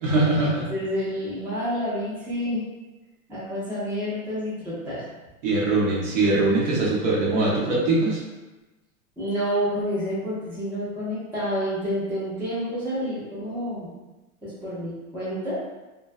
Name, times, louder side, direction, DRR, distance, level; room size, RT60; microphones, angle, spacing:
voice 1, 0.0-0.7 5.4-8.2, right 2 dB, 60° right, -5 dB, 1.0 m, -22 dB
voice 2, 0.7-2.6 3.3-5.1 9.2-13.9 14.4-15.6, equal, 5° right, -11 dB, 0.5 m, -29 dB
2.2 x 2.1 x 2.6 m, 1.1 s
hypercardioid pair, 130°, 42 cm